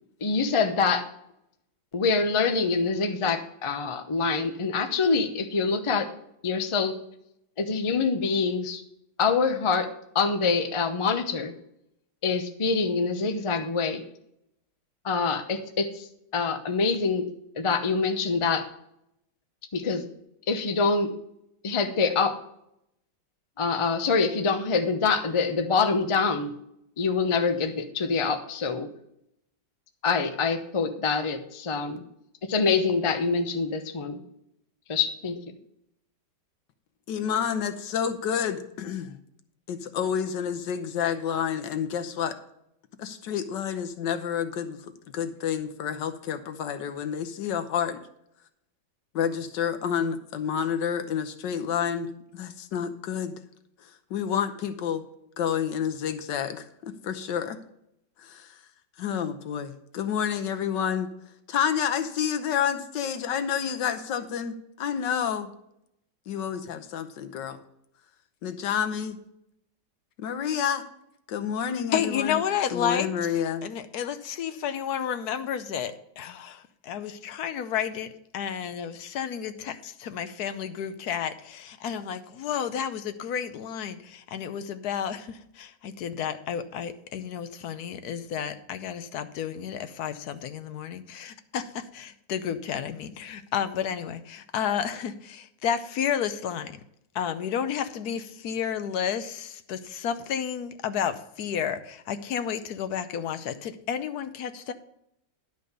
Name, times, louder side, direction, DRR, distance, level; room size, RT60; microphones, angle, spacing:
voice 1, 0.2-1.1 1.9-6.1 6.4-7.0 7.6-8.8 9.2-9.9 10.1-11.5 12.2-14.0 15.0-16.1 16.3-17.3 17.6-18.6 19.7-20.0 20.5-21.1 21.6-22.4 23.6-26.5 27.0-28.9 30.0-32.0 32.4-34.2 34.9-35.5, left 4 dB, 35° left, 6 dB, 0.5 m, -25 dB
voice 2, 37.1-39.2 39.7-42.4 43.0-44.8 45.1-48.0 49.1-53.3 53.8-55.0 55.4-57.6 58.2-58.6 59.0-61.1 61.5-65.5 66.3-67.6 68.4-69.2 70.2-70.8 71.3-72.4 72.7-73.7, left 8 dB, 90° left, 8 dB, 1.6 m, -29 dB
voice 3, 71.9-73.1 73.6-96.8 97.1-104.7, left 8 dB, 65° left, 10 dB, 1.2 m, -31 dB
11.0 x 5.1 x 6.7 m, 0.76 s
omnidirectional pair, 1.9 m